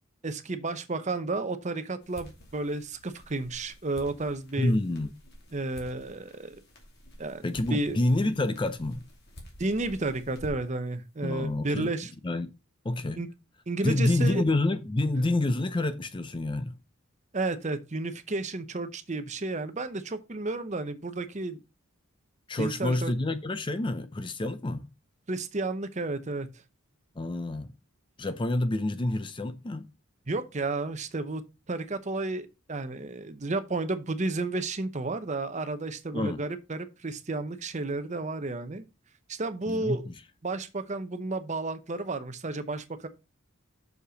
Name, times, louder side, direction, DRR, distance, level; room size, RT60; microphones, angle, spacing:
voice 1, 0.2-4.7 5.5-6.6 7.2-7.4 7.7-8.0 9.6-12.1 13.2-13.3 13.7-14.4 17.3-21.6 22.6-23.1 25.3-26.5 30.3-31.4 31.7-38.8 39.3-40.0 40.4-43.1, right 2 dB, 35° right, 0.8 m, -32 dB
sound 1, 2.0-10.9, left 1 dB, 50° left, 2.5 m, -50 dB
voice 2, 4.6-5.1 7.4-9.0 11.2-11.9 12.2-12.5 12.8-13.2 13.8-16.8 22.5-24.9 27.2-27.7 28.2-29.9 36.1-36.4 39.7-40.1, left 2 dB, 20° left, 0.4 m, -28 dB
6.7 x 5.3 x 5.0 m
head